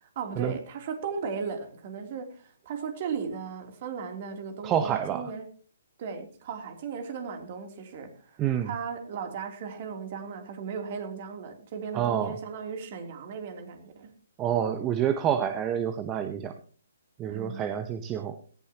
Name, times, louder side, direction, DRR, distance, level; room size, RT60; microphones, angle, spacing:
voice 1, 0.0-5.5 6.0-14.1 17.3-17.6, right 6 dB, 40° right, 5 dB, 3.2 m, -36 dB
voice 2, 4.6-5.3 8.4-8.7 11.9-12.4 14.4-16.5 17.2-18.4, right 9 dB, 20° right, 9 dB, 1.0 m, -28 dB
18.0 x 15.0 x 3.0 m, 0.40 s
figure-of-eight pair, 135°, 0 cm